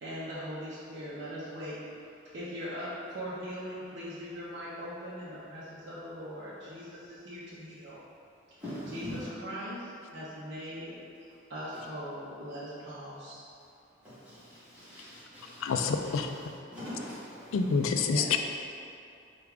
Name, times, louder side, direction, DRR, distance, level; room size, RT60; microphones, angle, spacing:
voice 1, 0.0-1.8 2.3-8.0 8.5-8.6 8.9-10.9 11.5-13.4 18.0-18.4, equal, 60° right, -10 dB, 0.6 m, -40 dB
voice 2, 8.6-9.3 11.7-11.8 14.0-17.9, equal, 5° right, -14 dB, 1.4 m, -43 dB
voice 3, 15.6-16.3 17.5-18.4, left 5 dB, 90° left, 5 dB, 0.3 m, -27 dB
4.8 x 2.4 x 3.4 m, 2.6 s
head